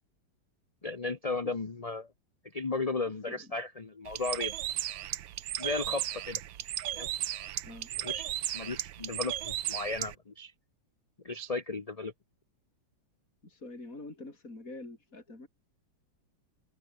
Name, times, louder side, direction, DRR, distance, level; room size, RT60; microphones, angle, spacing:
voice 1, 0.8-2.1 2.5-4.5 5.6-6.4 6.9-7.1 7.9-10.5 11.2-12.1, left 3 dB, 25° left, 0.8 m, -35 dB
Bird, 4.1-10.1, right 12 dB, 75° right, 1.6 m, -35 dB
voice 2, 13.4-15.5, left 2 dB, 40° left, 5.7 m, -45 dB
omnidirectional pair, 2.1 m